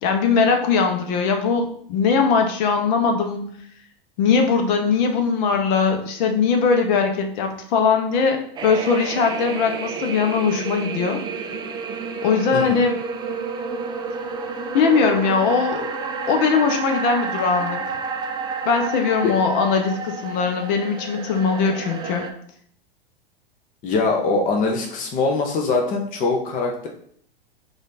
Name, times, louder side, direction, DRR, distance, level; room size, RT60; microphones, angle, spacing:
voice 1, 0.0-3.4 4.2-11.2 12.2-13.0 14.7-15.9 16.3-17.8 18.6-22.2, left 5 dB, 50° left, 4 dB, 1.0 m, -20 dB
sound 1, 8.6-22.3, right 4 dB, 15° right, 0.4 m, -30 dB
voice 2, 23.8-26.9, left 3 dB, 25° left, 1 dB, 0.8 m, -22 dB
4.9 x 2.6 x 4.1 m, 0.63 s
hypercardioid pair, 105°, 29 cm